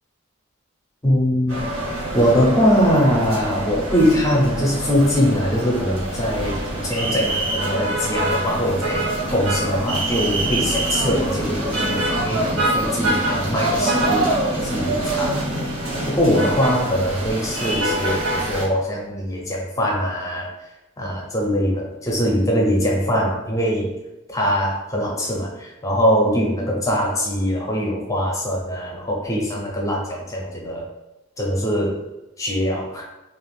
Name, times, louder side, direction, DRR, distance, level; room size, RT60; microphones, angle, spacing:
voice 1, 1.0-1.7 2.1-15.7 16.1-20.5 21.0-23.9 24.3-30.9 31.4-32.0 32.4-33.1, equal, 15° left, -2 dB, 0.5 m, -22 dB
sound 1, 1.5-18.7, right 1 dB, 80° right, 1.1 m, -24 dB
2.5 x 2.4 x 3.3 m, 1.0 s
head